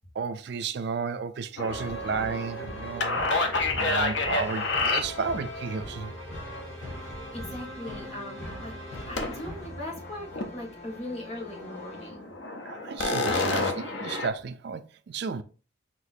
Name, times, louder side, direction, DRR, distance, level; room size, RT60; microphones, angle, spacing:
voice 1, 0.1-3.2 3.7-6.1 12.6-15.4, right 5 dB, 60° right, 0.4 m, -33 dB
sound 1, 1.6-5.5 9.2-9.6 10.0-10.6 10.9-11.0 11.4-14.3, left 3 dB, 65° left, 0.8 m, -29 dB
sound 2, 1.7-12.2, equal, 80° left, 2.2 m, -40 dB
voice 2, 7.3-8.7 9.1-12.3, left 1 dB, 35° left, 1.4 m, -39 dB
6.0 x 2.9 x 2.6 m
head